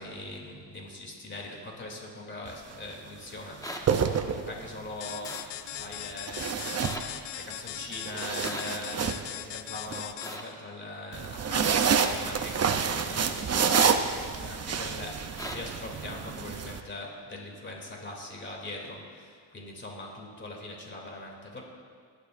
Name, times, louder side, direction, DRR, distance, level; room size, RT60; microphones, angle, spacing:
voice 1, 0.0-5.4 5.7-21.6, left 2 dB, 25° left, -1 dB, 3.1 m, -42 dB
sound 1, 2.5-2.7 3.6-4.8 6.3-7.5 7.9-10.0 11.1-16.8, right 6 dB, 35° right, 0.8 m, -28 dB
sound 2, 3.6-3.8 5.2-5.4 6.8-7.0 8.5-8.7 10.2-10.4 12.0-12.1 13.7-13.9 15.4-15.6, equal, 10° left, 1.3 m, -37 dB
sound 3, 5.0-10.6, left 13 dB, 70° left, 0.6 m, -40 dB
21.5 x 11.5 x 2.7 m, 2.1 s
cardioid pair, 95°, 44 cm